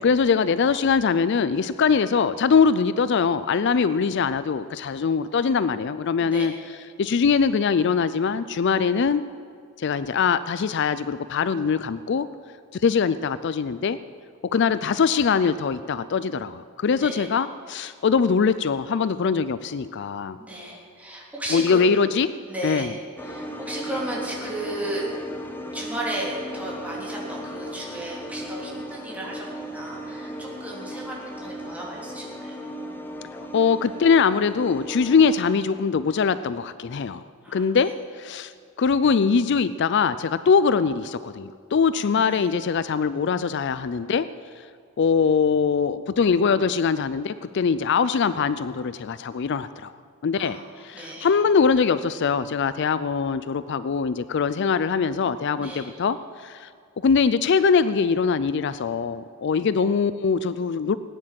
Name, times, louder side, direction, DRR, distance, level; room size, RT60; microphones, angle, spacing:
voice 1, 0.0-6.5 7.0-9.2 9.8-12.3 12.7-14.0 14.5-20.4 21.5-22.3 22.6-22.9 33.5-37.3 37.5-38.5 38.8-44.3 44.6-44.7 45.0-49.9 50.2-50.6 50.8-56.7 57.0-61.0, left 5 dB, 55° left, 14 dB, 0.4 m, -22 dB
voice 2, 6.2-6.6 17.0-17.3 20.4-21.9 22.5-25.1 25.7-32.6 37.4-37.6 42.1-42.5 50.3-50.5 50.8-51.4 55.6-55.9, right 1 dB, 5° right, -4 dB, 3.4 m, -34 dB
sound 1, 23.2-35.4, equal, 10° left, 1.2 m, -36 dB
18.5 x 9.9 x 7.6 m, 2.3 s
head